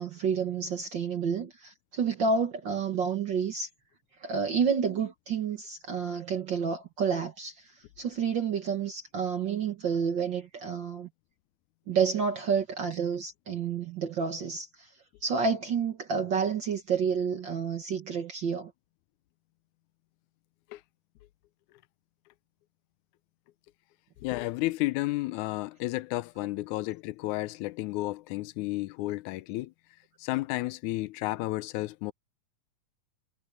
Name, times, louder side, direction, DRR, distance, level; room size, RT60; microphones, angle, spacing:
voice 1, 0.0-3.7 4.2-7.7 8.0-11.1 11.9-14.9 15.2-18.7, right 6 dB, 60° right, 1.2 m, -29 dB
voice 2, 24.2-29.7 30.2-32.1, left 19 dB, 80° left, 1.9 m, -32 dB
omnidirectional pair, 3.8 m